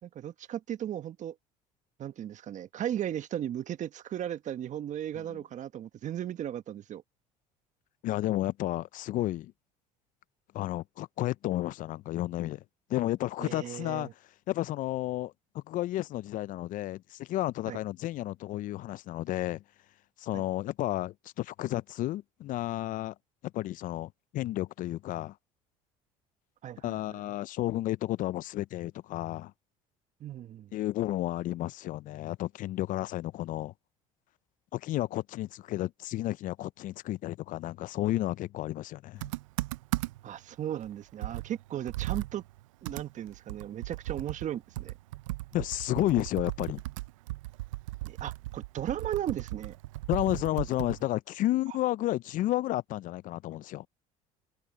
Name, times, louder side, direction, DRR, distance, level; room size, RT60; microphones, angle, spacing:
voice 1, 0.0-1.3 2.0-7.0 13.4-14.1 17.7-17.8 20.3-20.4 26.6-27.0 30.2-30.7 40.2-42.4 42.8-44.9 48.0-49.7, right 11 dB, 50° right, 1.5 m, -36 dB
voice 2, 8.0-9.5 10.5-12.6 12.9-14.1 14.5-19.6 20.2-23.1 23.5-25.4 26.8-29.5 30.7-33.7 34.7-39.3 45.5-46.8 50.1-53.9, left 15 dB, 55° left, 0.5 m, -32 dB
Computer keyboard, 39.2-40.4 40.8-40.9 41.2-51.1, right 18 dB, 90° right, 0.6 m, -37 dB
open air
supercardioid pair, 80°, 16 cm